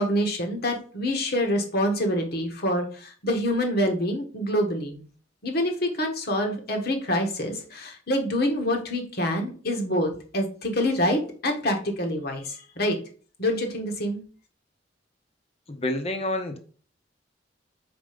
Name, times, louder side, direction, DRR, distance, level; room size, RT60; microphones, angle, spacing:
voice 1, 0.0-5.0 5.4-13.0 13.4-14.2, equal, 55° left, 3 dB, 1.5 m, -26 dB
voice 2, 15.7-16.6, left 1 dB, 35° left, 7 dB, 0.9 m, -28 dB
5.1 x 4.7 x 5.1 m, 0.42 s
head